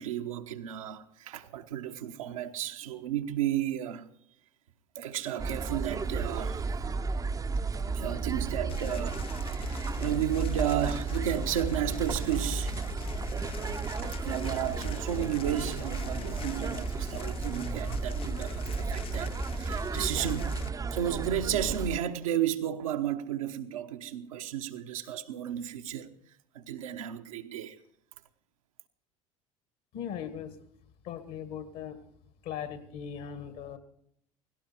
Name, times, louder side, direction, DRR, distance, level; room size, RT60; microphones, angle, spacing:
voice 1, 0.0-4.0 4.9-6.6 7.9-12.7 14.0-20.6 20.9-26.1 26.5-27.8, right 10 dB, 75° right, 1.1 m, -33 dB
sound 1, 5.4-22.0, right 4 dB, 20° right, 0.7 m, -33 dB
sound 2, 8.7-20.7, left 8 dB, 30° left, 0.6 m, -42 dB
voice 2, 29.9-30.7 31.0-32.0 32.4-33.8, left 8 dB, 55° left, 1.8 m, -39 dB
17.5 x 17.0 x 4.5 m
figure-of-eight pair, 70°, 18 cm